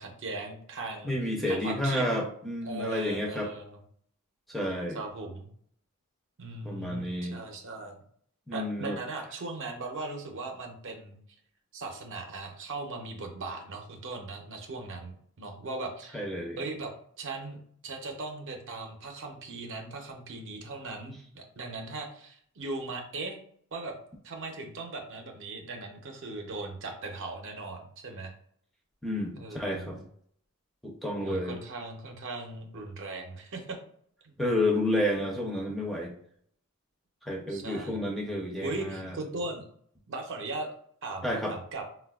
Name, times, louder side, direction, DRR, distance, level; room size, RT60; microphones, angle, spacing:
voice 1, 0.0-1.2 1.5-2.1 2.6-3.8 4.9-5.5 6.4-8.0 8.5-11.2 11.7-16.2 16.6-16.9 17.2-23.4 23.7-23.9 24.2-28.3 29.3-29.9 31.2-33.8 34.2-34.3 37.5-38.0 38.6-39.7 40.1-40.7 41.0-41.8, right 3 dB, 60° right, 3 dB, 0.6 m, -38 dB
voice 2, 1.0-3.5 4.5-5.0 6.6-7.4 8.5-9.0 16.1-16.6 29.0-30.0 30.8-31.6 34.4-36.1 37.2-39.2 41.2-41.5, left 1 dB, ahead, -1 dB, 0.4 m, -30 dB
4.0 x 2.2 x 2.3 m, 0.62 s
head